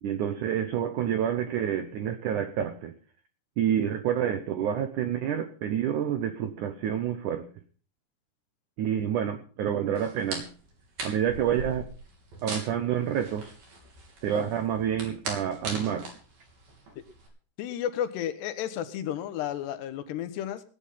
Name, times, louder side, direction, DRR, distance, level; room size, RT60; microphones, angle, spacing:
voice 1, 0.0-2.9 3.6-7.5 8.8-10.5 11.0-11.9 12.4-13.5 14.2-16.1, right 9 dB, 80° right, 1.8 m, -28 dB
sound 1, 10.0-17.3, right 3 dB, 55° right, 4.9 m, -40 dB
voice 2, 17.6-20.6, left 10 dB, 80° left, 3.2 m, -32 dB
18.5 x 9.0 x 5.6 m
omnidirectional pair, 4.9 m